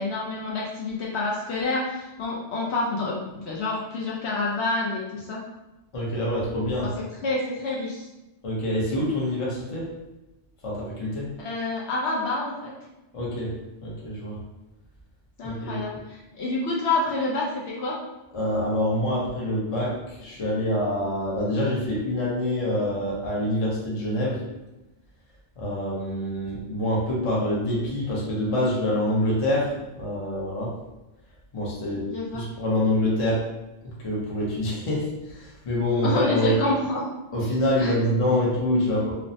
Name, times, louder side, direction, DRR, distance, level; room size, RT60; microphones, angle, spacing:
voice 1, 0.0-5.4 6.8-6.9 7.2-8.1 11.4-12.7 15.4-18.0 32.1-32.4 36.0-37.0 37.8-38.0, left 2 dB, 65° left, -4 dB, 0.8 m, -28 dB
voice 2, 5.9-6.9 8.4-9.9 10.6-11.3 13.1-13.6 13.8-14.4 15.4-15.8 18.3-24.4 25.6-29.7 30.0-30.7 31.5-32.0 32.3-33.4 34.0-36.5 37.3-39.1, left 1 dB, 35° left, -5 dB, 0.6 m, -26 dB
3.0 x 2.0 x 2.6 m, 0.98 s
omnidirectional pair, 1.3 m